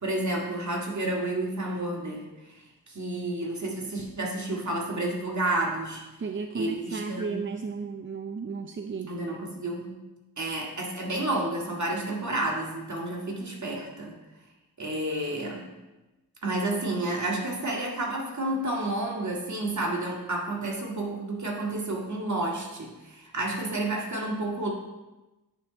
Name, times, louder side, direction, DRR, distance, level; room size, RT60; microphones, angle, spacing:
voice 1, 0.0-6.0 6.5-7.4 9.1-9.9 10.4-14.2 14.8-15.7 16.4-24.7, right 2 dB, 45° right, -1 dB, 1.9 m, -30 dB
voice 2, 6.2-9.1, right 5 dB, 30° right, 6 dB, 0.5 m, -34 dB
9.9 x 3.5 x 5.0 m, 1.1 s
cardioid pair, 45°, 39 cm